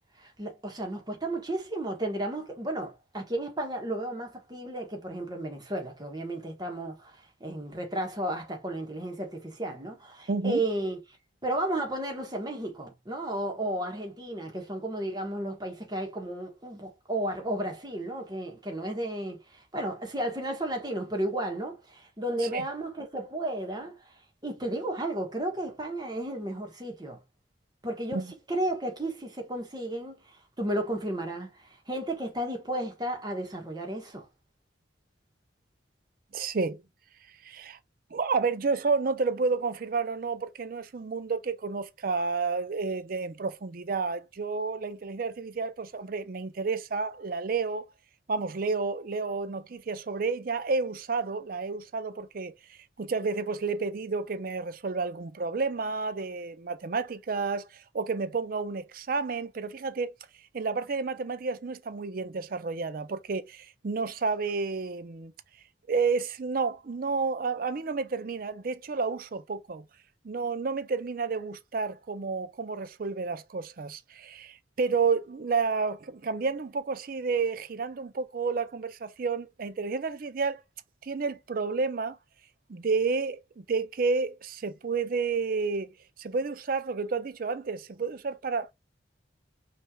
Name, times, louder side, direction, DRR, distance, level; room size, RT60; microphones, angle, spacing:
voice 1, 0.2-11.0 11.4-24.0 24.4-27.2 27.8-34.3, right 1 dB, 20° right, 1.4 m, -33 dB
voice 2, 10.3-10.6 22.5-22.6 28.1-28.3 36.3-36.8 37.4-37.8 38.1-47.9 48.3-60.1 60.5-65.3 65.9-69.8 70.2-80.6 81.0-82.2 82.7-85.9 86.2-88.7, right 4 dB, 50° right, 0.5 m, -30 dB
5.4 x 3.4 x 2.3 m
head